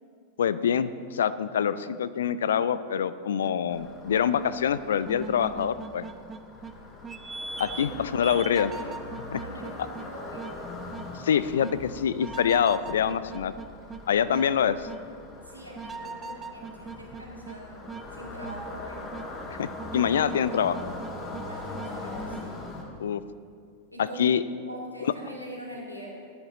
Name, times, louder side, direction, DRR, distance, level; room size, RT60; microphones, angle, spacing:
voice 1, 0.4-6.1 7.6-8.7 9.3-9.4 11.1-13.5 14.1-14.9 19.5-20.9 23.0-23.2 24.0-24.4 25.0-25.1, left 8 dB, 65° left, 15 dB, 0.4 m, -25 dB
sound 1, 3.4-3.6 4.1-4.2 5.1-6.7 7.0-7.9 8.2-10.1 10.4-10.5 10.9-11.1 11.6-11.7 12.2-14.0 14.3-14.5 14.9-15.0 15.7-17.6 17.9-18.0 18.4-18.6 19.1-19.2 19.8-21.4 21.7-21.9 22.3-22.4, right 4 dB, 15° right, 0.6 m, -39 dB
sound 2, 3.7-22.8, left 2 dB, 25° left, 1.9 m, -41 dB
voice 2, 7.8-9.1 9.4-10.5 15.4-19.1 21.5-22.6 23.9-24.3 24.7-26.1, right 1 dB, 90° right, -4 dB, 2.2 m, -43 dB
15.5 x 10.5 x 3.0 m, 2.2 s
figure-of-eight pair, 90°, 0 cm